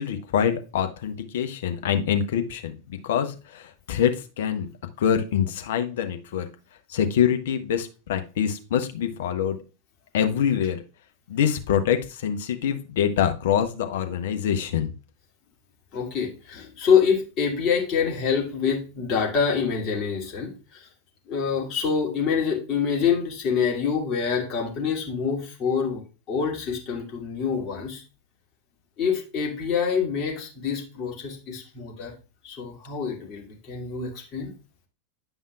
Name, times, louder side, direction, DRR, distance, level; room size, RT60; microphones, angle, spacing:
voice 1, 0.0-4.7 5.0-6.5 6.9-9.6 10.1-10.8 11.3-14.9, left 8 dB, 55° left, 8 dB, 0.9 m, -25 dB
voice 2, 15.9-20.9 21.3-28.0 29.0-32.1 32.4-34.5, left 6 dB, 35° left, 0 dB, 2.3 m, -26 dB
9.9 x 5.5 x 2.3 m, 0.33 s
figure-of-eight pair, 90°, 0 cm